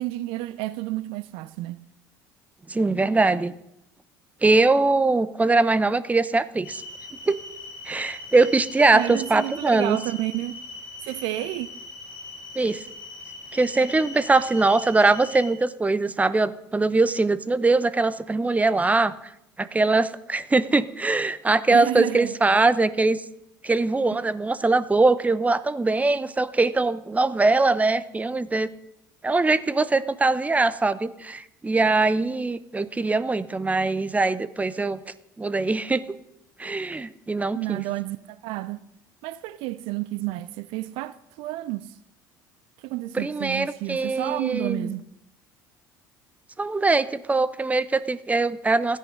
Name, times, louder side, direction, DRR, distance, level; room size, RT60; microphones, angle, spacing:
voice 1, 0.0-1.8 8.9-10.6 11.0-11.7 21.7-22.4 37.5-38.8 39.2-42.0 42.8-45.0, right 17 dB, 55° right, 0.6 m, -30 dB
voice 2, 2.7-3.5 4.4-6.8 7.3-7.4 7.9-10.0 12.6-12.8 13.5-19.1 19.6-23.2 23.6-28.7 29.2-35.0 35.4-36.0 36.6-37.8 43.1-44.9 46.6-49.0, right 3 dB, 15° right, 0.8 m, -22 dB
sound 1, 6.6-15.5, left 2 dB, 55° left, 5.2 m, -41 dB
16.0 x 14.0 x 5.3 m
figure-of-eight pair, 60°, 11 cm